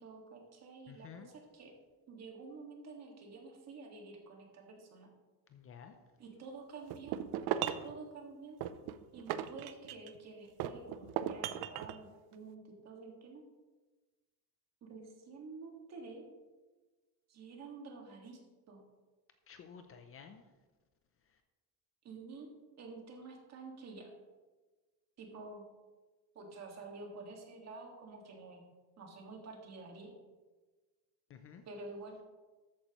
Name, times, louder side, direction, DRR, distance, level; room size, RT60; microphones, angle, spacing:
voice 1, 0.0-1.7 2.1-5.1 6.2-7.2 7.8-8.6 9.1-13.4 14.8-16.3 17.3-18.4 18.7-18.8 22.0-22.5 22.8-24.1 25.2-25.6 26.4-28.6 29.0-30.1 31.6-32.2, right 3 dB, 40° right, 1 dB, 1.9 m, -49 dB
voice 2, 0.9-1.3 5.5-5.9 19.5-20.4 21.3-21.4 31.3-31.6, left 7 dB, 35° left, 7 dB, 0.6 m, -52 dB
sound 1, 6.9-7.9 8.6-10.2 10.6-12.0, right 10 dB, 70° right, 0.6 m, -37 dB
13.5 x 8.7 x 3.0 m, 1.3 s
cardioid pair, 175°, 40 cm